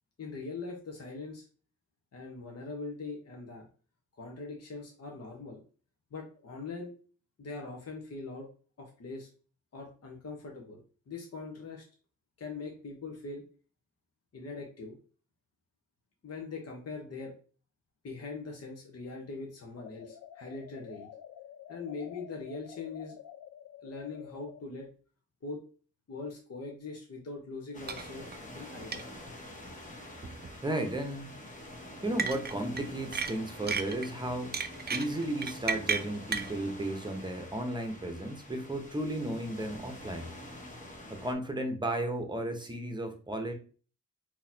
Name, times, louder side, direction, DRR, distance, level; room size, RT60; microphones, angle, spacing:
voice 1, 0.2-1.5 2.1-3.7 4.2-5.6 6.1-6.9 7.4-8.5 8.8-9.3 9.7-11.8 12.4-13.4 14.3-15.0 16.2-17.3 18.0-21.1 21.7-23.2 23.8-24.9 25.4-25.6 26.1-29.0, left 3 dB, 50° left, 0 dB, 1.0 m, -42 dB
sound 1, 19.8-24.6, left 9 dB, 70° left, 0.5 m, -49 dB
sound 2, 27.7-41.3, left 1 dB, 25° left, 1.1 m, -47 dB
sound 3, 27.9-28.1 28.3-28.4 28.9-29.0 30.2-30.5 32.2-32.8 33.1-34.1 34.5-36.5, right 5 dB, 30° right, 0.5 m, -32 dB
voice 2, 30.6-31.3 32.0-34.5 34.9-40.3 41.1-43.5, right 1 dB, 15° right, 5 dB, 0.9 m, -34 dB
3.9 x 2.9 x 2.8 m, 0.39 s
cardioid pair, 50°, 32 cm